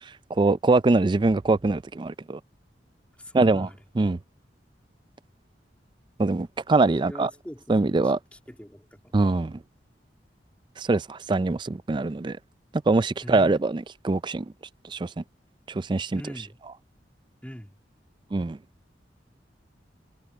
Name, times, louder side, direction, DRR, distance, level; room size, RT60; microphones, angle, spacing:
voice 1, 0.0-2.4 3.3-3.7 3.9-4.2 6.2-7.3 7.7-8.2 9.1-9.6 10.8-12.4 12.9-14.5 14.8-15.2 15.7-16.2 18.3-18.6, right 3 dB, 25° right, 0.4 m, -23 dB
voice 2, 3.2-3.8 7.0-9.2 13.2-13.6 16.1-16.6 17.4-17.8, equal, 5° left, 2.6 m, -42 dB
head